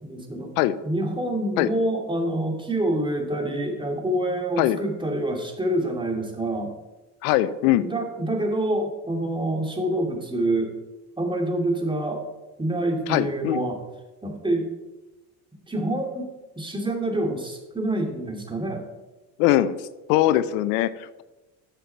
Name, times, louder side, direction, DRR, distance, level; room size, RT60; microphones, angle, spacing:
voice 1, 0.0-0.5 0.8-6.7 7.8-10.7 11.2-12.2 12.6-13.8 14.2-14.7 15.7-18.8, right 1 dB, 10° right, 2 dB, 2.3 m, -26 dB
voice 2, 7.2-7.9 13.1-13.6 19.4-19.8 20.1-21.2, left 14 dB, 80° left, 16 dB, 0.7 m, -21 dB
10.0 x 7.0 x 4.5 m, 1.1 s
supercardioid pair, 80°, 48 cm